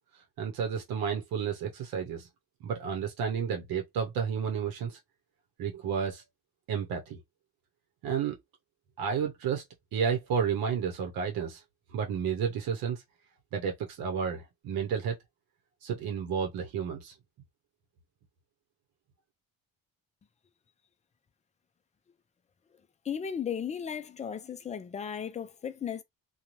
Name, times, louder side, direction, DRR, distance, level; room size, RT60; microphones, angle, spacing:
voice 1, 0.4-2.3 2.6-5.0 5.6-6.2 6.7-7.2 8.0-8.4 9.0-9.6 9.9-11.6 11.9-13.0 13.5-15.2 15.8-17.1, right 7 dB, 80° right, 0.8 m, -31 dB
voice 2, 23.0-26.0, left 8 dB, 20° left, 0.4 m, -35 dB
2.6 x 2.2 x 3.0 m
cardioid pair, 120°, 36 cm